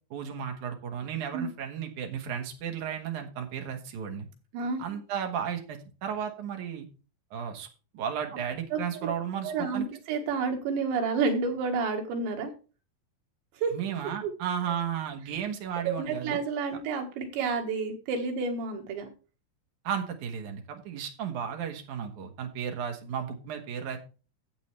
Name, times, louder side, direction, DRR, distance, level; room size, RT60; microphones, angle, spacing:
voice 1, 0.1-4.3 4.8-6.9 7.3-7.7 7.9-9.9 13.7-16.4 19.8-24.0, right 8 dB, 60° right, 3 dB, 2.3 m, -34 dB
voice 2, 8.7-9.1 9.4-12.5 13.6-13.8 14.2-14.3 14.7-14.8 15.8-19.1, right 4 dB, 85° right, 3 dB, 3.9 m, -30 dB
12.0 x 8.2 x 3.3 m, 0.33 s
omnidirectional pair, 4.9 m